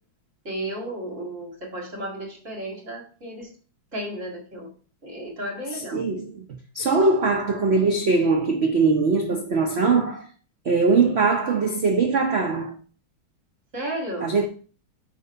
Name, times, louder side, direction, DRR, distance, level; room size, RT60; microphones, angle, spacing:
voice 1, 0.4-3.5 3.9-4.7 5.0-6.0 13.7-14.3, right 1 dB, 40° right, 2.4 m, -33 dB
voice 2, 5.7-6.5 6.7-10.3 10.6-12.7 14.2-14.5, right 4 dB, 75° right, 0.6 m, -21 dB
9.1 x 3.2 x 5.3 m
omnidirectional pair, 2.2 m